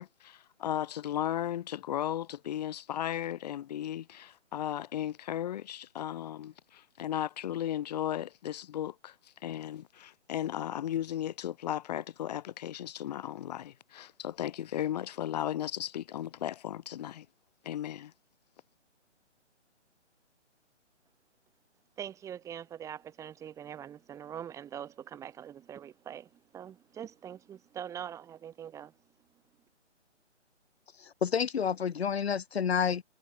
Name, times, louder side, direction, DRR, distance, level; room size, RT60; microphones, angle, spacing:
voice 1, 0.0-17.3 17.6-18.1, left 11 dB, 35° left, 1.9 m, -35 dB
voice 2, 22.0-28.9, right 9 dB, 10° right, 1.8 m, -43 dB
voice 3, 31.0-33.0, left 7 dB, 60° left, 1.4 m, -29 dB
figure-of-eight pair, 145°, 36 cm